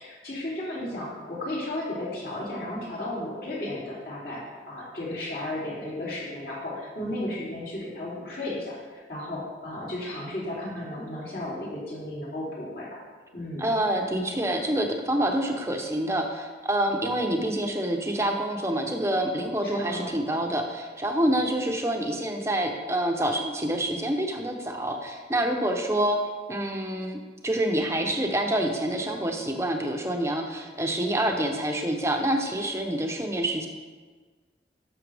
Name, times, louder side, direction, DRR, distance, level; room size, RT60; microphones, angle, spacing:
voice 1, 0.0-13.0 13.3-13.7 19.6-20.1, left 1 dB, 55° left, -7 dB, 3.0 m, -34 dB
voice 2, 13.6-26.2 26.5-33.7, right 1 dB, 15° right, 3 dB, 0.8 m, -27 dB
11.0 x 6.8 x 3.5 m, 1.4 s
head